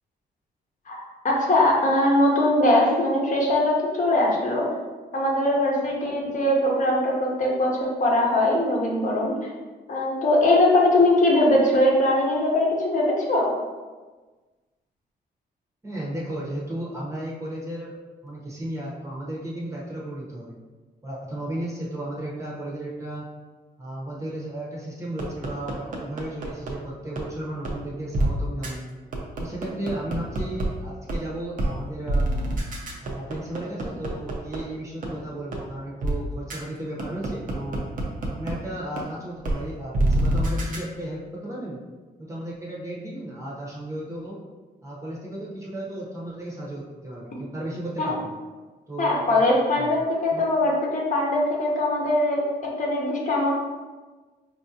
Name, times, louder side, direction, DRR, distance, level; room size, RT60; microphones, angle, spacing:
voice 1, 0.9-4.7 5.1-9.5 9.9-13.5 48.0-48.2 49.0-50.0 50.2-52.4 52.8-53.5, left 1 dB, 45° left, -3 dB, 0.8 m, -21 dB
voice 2, 15.8-17.9 18.2-20.6 21.0-23.2 23.8-28.9 29.4-32.3 33.0-37.8 38.3-41.8 42.2-44.4 44.8-48.3 48.9-49.2 49.8-49.9 50.3-50.4, right 1 dB, 15° right, -5 dB, 0.8 m, -34 dB
sound 1, 25.2-26.7 27.2-27.3 27.6-27.7 28.1-28.3 28.6-28.7 29.1-30.6 31.1-31.2 31.6-31.7 32.1-34.6 35.0-35.1 35.5-35.6 36.0-36.1 36.5-36.6 37.0-38.5 39.0-39.1 39.4-39.5 39.9-40.8, right 1 dB, 50° right, 0.7 m, -25 dB
4.7 x 2.4 x 2.7 m, 1.3 s
wide cardioid pair, 145°, 18 cm